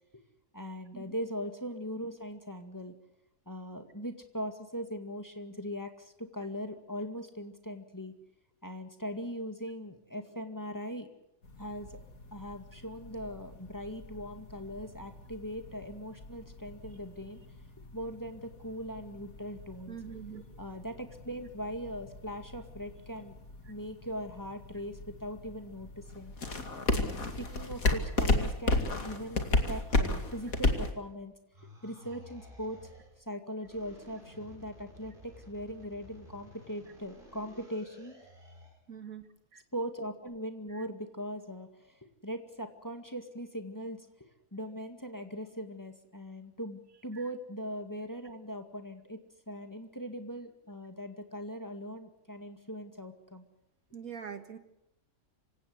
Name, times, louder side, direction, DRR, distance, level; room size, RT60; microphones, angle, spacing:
voice 1, 0.5-3.0 3.5-8.1 8.6-11.1 11.6-12.0 12.3-17.4 17.9-20.0 20.6-23.4 23.7-26.3 26.9-31.3 31.8-32.9 33.2-38.2 39.7-49.2 49.5-53.4, equal, 15° left, 6 dB, 2.1 m, -40 dB
sound 1, 11.4-30.9, left 2 dB, 70° left, 2.9 m, -35 dB
voice 2, 19.9-20.4 38.4-38.5 38.9-39.2 39.5-39.6 40.7-40.8 53.9-54.6, right 7 dB, 70° right, 8 dB, 2.3 m, -43 dB
sound 2, 29.9-31.2 31.5-33.2 33.6-38.8, equal, 35° right, 6.7 m, -54 dB
26.5 x 17.0 x 8.1 m, 0.84 s
omnidirectional pair, 1.5 m